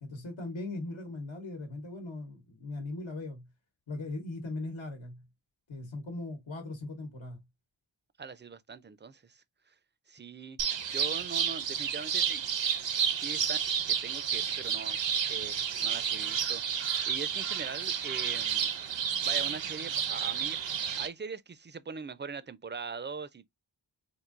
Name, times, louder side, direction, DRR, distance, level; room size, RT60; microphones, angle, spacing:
voice 1, 0.0-3.5 3.9-5.2 5.7-7.4, left 2 dB, 75° left, 1.1 m, -39 dB
voice 2, 8.2-9.4 10.1-10.6 10.9-12.4 13.1-13.6 13.9-15.0 15.3-16.6 17.1-18.7 19.2-20.6 21.0-23.5, right 5 dB, 25° right, 0.4 m, -41 dB
sound 1, 10.6-21.1, right 8 dB, 70° right, 0.7 m, -31 dB
4.6 x 2.6 x 2.4 m
wide cardioid pair, 50°, 46 cm